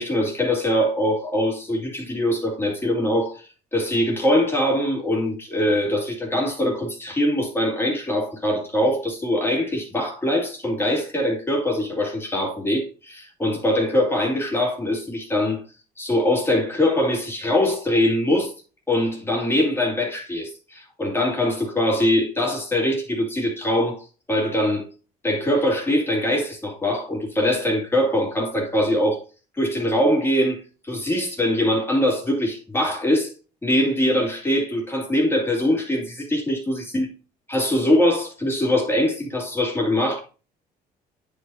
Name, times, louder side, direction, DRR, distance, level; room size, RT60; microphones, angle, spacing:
voice 1, 0.0-15.6 16.0-18.5 18.9-24.9 25.2-29.2 29.5-33.3 33.6-37.1 37.5-40.2, left 1 dB, 15° left, 2.2 m, -22 dB
9.7 x 4.9 x 2.7 m
cardioid pair, 110°, 17 cm